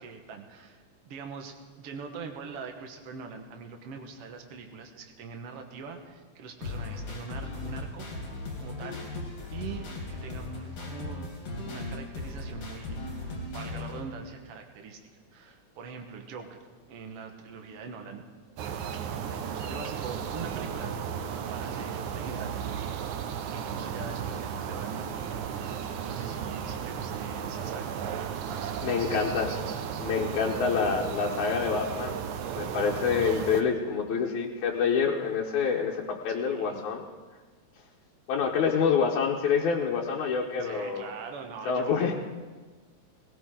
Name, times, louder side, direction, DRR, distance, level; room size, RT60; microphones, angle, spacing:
voice 1, 0.0-9.0 9.5-11.3 11.7-13.0 13.5-15.0 15.3-16.6 16.9-18.2 19.2-20.9 21.5-22.6 23.5-29.1 36.4-36.9 40.6-42.1, right 5 dB, 60° right, 4 dB, 2.1 m, -43 dB
sound 1, 6.6-14.0, left 2 dB, 55° left, 4.1 m, -37 dB
sound 2, 18.6-33.6, right 7 dB, 90° right, 2.3 m, -34 dB
voice 2, 28.8-29.6 30.0-32.2 32.6-37.0 38.3-41.1 41.7-42.1, left 6 dB, 85° left, -2 dB, 2.4 m, -27 dB
19.5 x 17.5 x 3.8 m, 1.3 s
omnidirectional pair, 3.3 m